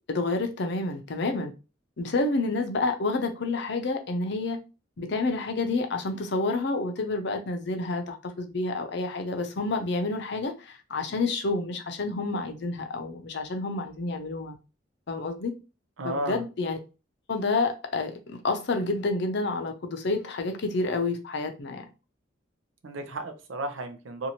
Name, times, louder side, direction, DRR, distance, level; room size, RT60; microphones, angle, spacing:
voice 1, 0.1-1.5 2.0-4.6 5.0-14.6 15.1-15.5 16.0-16.8 17.3-21.8, left 3 dB, 60° left, 0.6 m, -29 dB
voice 2, 16.0-16.5 22.8-24.3, right 1 dB, 85° right, 0.6 m, -33 dB
2.7 x 2.5 x 2.9 m
head